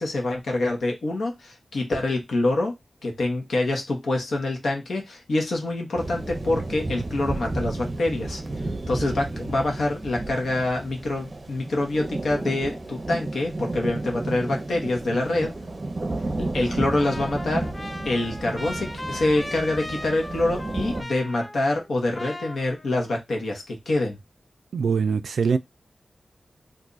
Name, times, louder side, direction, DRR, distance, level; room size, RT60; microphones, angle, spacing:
voice 1, 0.0-2.7 3.0-8.4 8.9-15.5 16.4-17.7 18.0-24.2, left 2 dB, 80° left, 1.1 m, -26 dB
sound 1, 6.0-21.0, right 2 dB, 35° right, 0.6 m, -32 dB
Trumpet, 16.9-21.9 22.1-23.2, left 1 dB, 15° left, 0.4 m, -38 dB
voice 2, 24.7-25.6, right 5 dB, 90° right, 0.3 m, -22 dB
2.6 x 2.4 x 3.9 m
wide cardioid pair, 95°, 0 cm